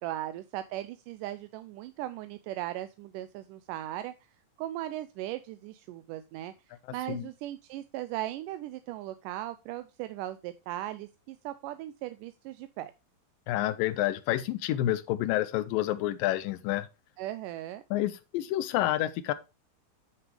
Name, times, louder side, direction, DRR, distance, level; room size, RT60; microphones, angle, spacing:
voice 1, 0.0-4.1 4.6-12.9 17.2-17.8, right 14 dB, 80° right, 2.0 m, -38 dB
voice 2, 13.5-16.9 17.9-19.3, left 14 dB, 80° left, 2.3 m, -29 dB
9.4 x 6.1 x 3.2 m
omnidirectional pair, 4.1 m